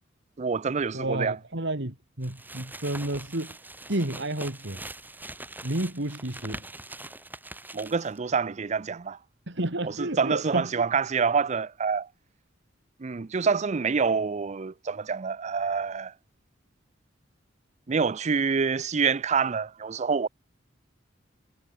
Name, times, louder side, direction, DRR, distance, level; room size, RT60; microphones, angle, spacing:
voice 1, 0.4-1.4 7.7-9.2 9.8-12.1 13.0-16.1 17.9-20.3, right 5 dB, 35° right, 0.5 m, -26 dB
voice 2, 0.9-3.6 3.9-4.8 5.6-6.6 9.5-10.9, right 1 dB, 65° right, 2.9 m, -31 dB
sound 1, 2.2-8.2, right 2 dB, 10° right, 6.7 m, -43 dB
head